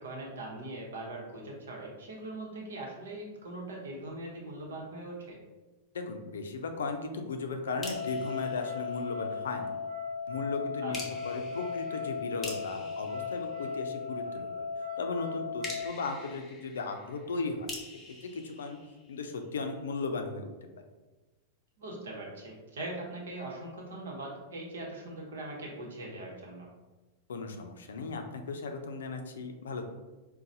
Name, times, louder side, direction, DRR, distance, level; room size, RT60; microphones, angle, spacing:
voice 1, 0.0-5.4 10.8-10.9 21.8-26.7, right 2 dB, 80° right, -1 dB, 0.9 m, -41 dB
voice 2, 5.9-9.7 10.3-14.7 15.0-17.9 18.2-18.8 19.1-20.7 27.3-29.9, left 3 dB, 80° left, 5 dB, 0.4 m, -36 dB
sound 1, 7.7-15.9, left 5 dB, 55° right, 0.3 m, -37 dB
sound 2, 7.8-9.5 10.9-14.3 15.6-19.5, left 2 dB, 20° left, 0.8 m, -46 dB
4.0 x 2.2 x 2.6 m, 1.2 s
hypercardioid pair, 105°, 0 cm